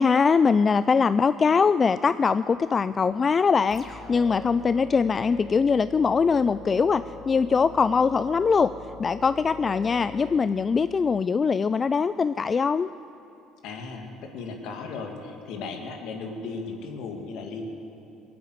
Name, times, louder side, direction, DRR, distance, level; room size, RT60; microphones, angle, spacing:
voice 1, 0.0-8.7 9.0-12.9, left 5 dB, 35° left, 14 dB, 0.3 m, -22 dB
sound 1, 3.7-11.2, left 2 dB, 15° left, 2.6 m, -42 dB
voice 2, 13.6-17.7, left 4 dB, 70° left, 3 dB, 2.1 m, -36 dB
20.5 x 8.7 x 8.1 m, 2.8 s
supercardioid pair, 70°, 0 cm